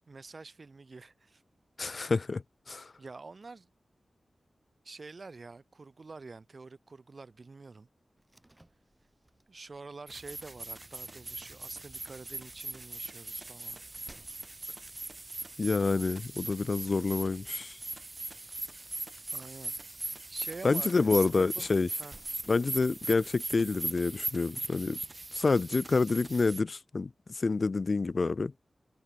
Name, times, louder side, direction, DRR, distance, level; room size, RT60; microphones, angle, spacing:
voice 1, 0.1-1.4 3.0-3.7 4.8-7.9 9.5-13.8 19.3-19.8 20.3-21.7 22.0-22.1 22.5-22.7, right 3 dB, 55° right, 3.0 m, -47 dB
voice 2, 1.8-2.4 2.7-2.9 15.6-17.8 20.6-21.9 22.5-25.0 25.3-27.1 27.3-28.5, left 3 dB, 55° left, 0.3 m, -28 dB
Slam, 8.2-23.2, right 1 dB, 20° right, 7.5 m, -64 dB
sound 1, 10.1-26.6, right 2 dB, 35° right, 0.4 m, -40 dB
cardioid pair, 55°, 0 cm